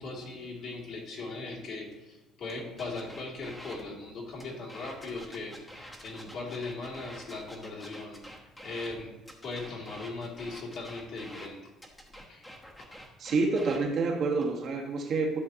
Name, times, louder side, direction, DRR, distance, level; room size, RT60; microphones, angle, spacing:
voice 1, 0.0-9.1 9.4-11.7 12.3-12.5 12.8-12.9, left 3 dB, 60° left, -4 dB, 2.7 m, -39 dB
sound 1, 2.8-3.8 4.3-8.9 9.3-11.5 11.8-13.8 14.3-14.7, equal, 10° left, 1.1 m, -47 dB
voice 2, 13.2-15.4, right 3 dB, 50° right, 0 dB, 1.3 m, -28 dB
12.0 x 6.2 x 2.9 m, 1.0 s
cardioid pair, 135°, 0 cm